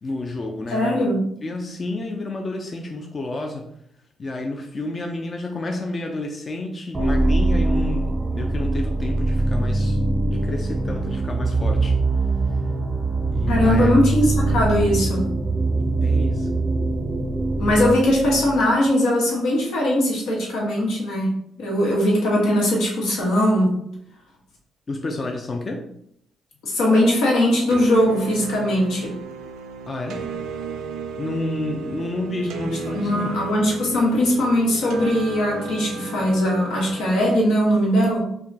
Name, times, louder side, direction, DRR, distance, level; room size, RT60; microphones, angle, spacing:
voice 1, 0.0-1.1 1.4-3.7 4.2-10.0 10.3-12.0 13.3-13.9 16.0-16.6 24.9-25.8 29.9-30.3 31.2-33.3, left 2 dB, 35° left, 3 dB, 0.4 m, -30 dB
voice 2, 0.7-1.2 13.5-15.2 17.6-21.3 21.6-23.8 26.6-29.1 32.9-38.2, equal, 85° left, -2 dB, 1.1 m, -20 dB
sound 1, 6.9-18.8, right 2 dB, 20° right, 0.5 m, -22 dB
sound 2, 27.7-37.3, right 5 dB, 90° right, 0.4 m, -34 dB
4.6 x 2.2 x 2.7 m, 0.73 s
cardioid pair, 90°, 0 cm